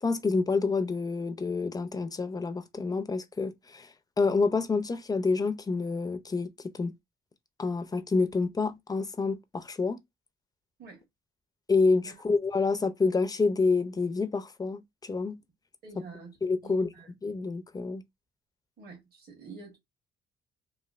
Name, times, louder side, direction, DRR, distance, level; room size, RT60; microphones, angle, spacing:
voice 1, 0.0-3.9 4.2-6.5 6.8-6.9 7.6-10.0 11.7-15.4 16.4-16.9 17.2-18.0, left 4 dB, 20° left, 0.5 m, -28 dB
voice 2, 15.8-16.3 16.6-17.1 18.8-19.8, right 3 dB, 50° right, 1.5 m, -47 dB
3.1 x 2.5 x 2.4 m
cardioid pair, 90°, 20 cm